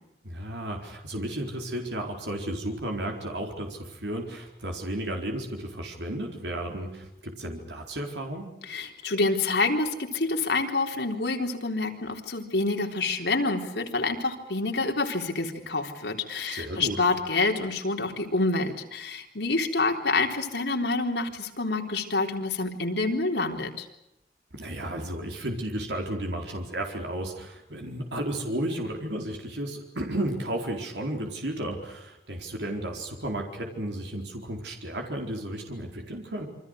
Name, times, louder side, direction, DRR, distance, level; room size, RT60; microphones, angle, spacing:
voice 1, 0.2-8.5 16.5-17.0 24.5-36.5, right 1 dB, 85° right, 2 dB, 4.3 m, -33 dB
voice 2, 8.7-23.9, left 3 dB, 80° left, 3 dB, 3.9 m, -27 dB
28.0 x 24.5 x 6.6 m, 0.88 s
head